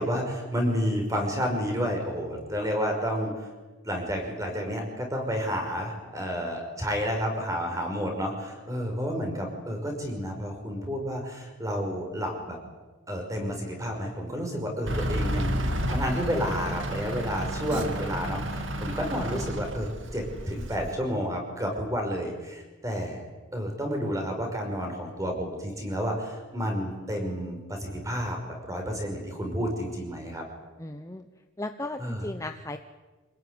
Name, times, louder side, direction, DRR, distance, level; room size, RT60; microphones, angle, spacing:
voice 1, 0.0-3.5 3.8-12.6 13.1-15.6 15.9-28.4 28.6-30.4 32.0-32.3, equal, 15° right, 2 dB, 5.8 m, -30 dB
Truck / Idling, 14.9-20.9, equal, 60° right, 2.6 m, -31 dB
voice 2, 30.8-31.3 31.6-32.8, left 2 dB, 15° left, 7 dB, 0.9 m, -36 dB
27.0 x 19.0 x 9.9 m, 1.2 s
head